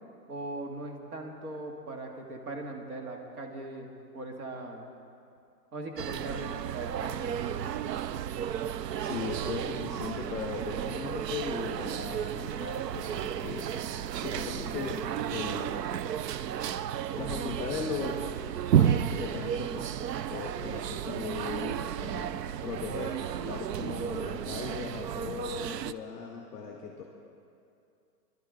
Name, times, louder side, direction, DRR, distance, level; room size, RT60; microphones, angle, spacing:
voice 1, 0.3-3.9 4.1-4.9 5.7-7.5, right 2 dB, 65° right, 2 dB, 2.0 m, -39 dB
sound 1, 6.0-25.9, right 9 dB, 90° right, 0.6 m, -32 dB
voice 2, 9.0-13.8 14.1-15.0 15.3-15.8 17.1-18.3 18.8-19.9 20.3-27.0, left 5 dB, 5° left, 0 dB, 0.6 m, -38 dB
22.0 x 12.0 x 3.8 m, 2.5 s
hypercardioid pair, 170°, 48 cm